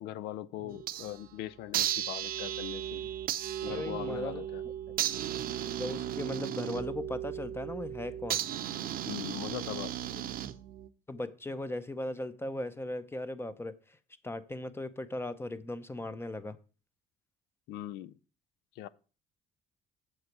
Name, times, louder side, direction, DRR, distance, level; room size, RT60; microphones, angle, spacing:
voice 1, 0.0-3.1 3.6-4.6 9.1-10.2 17.7-18.2 18.8-18.9, left 13 dB, 90° left, 0.5 m, -40 dB
sound 1, 0.7-1.3 1.7-10.9, right 11 dB, 60° right, 0.6 m, -35 dB
voice 2, 3.7-4.7 5.8-8.4 11.1-14.0 14.2-16.6, left 1 dB, 15° left, 0.6 m, -38 dB
7.9 x 6.9 x 4.6 m
cardioid pair, 110°, 17 cm